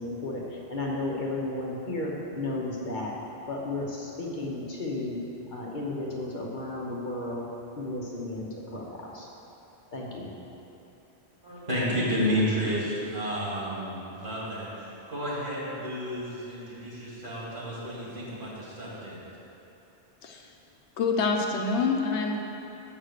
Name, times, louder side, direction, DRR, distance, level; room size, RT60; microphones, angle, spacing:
voice 1, 0.0-3.2 3.5-5.2 5.5-7.5 7.8-9.3 9.9-10.3, left 2 dB, 50° left, -3 dB, 1.0 m, -33 dB
voice 2, 11.4-19.2, equal, 50° right, -7 dB, 2.2 m, -31 dB
voice 3, 21.0-22.4, left 4 dB, 80° left, 2 dB, 1.0 m, -26 dB
6.4 x 5.7 x 6.6 m, 2.9 s
omnidirectional pair, 1.1 m